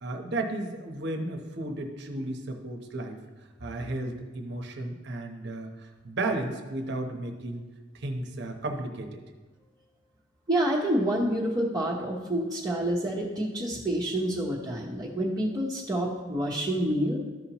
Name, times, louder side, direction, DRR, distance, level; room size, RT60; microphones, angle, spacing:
voice 1, 0.0-3.2 3.6-5.7 6.0-7.6 7.9-9.2, right 2 dB, 60° right, 4 dB, 0.9 m, -33 dB
voice 2, 10.5-17.2, right 1 dB, 20° right, -5 dB, 1.0 m, -28 dB
13.5 x 5.6 x 3.0 m, 1.3 s
head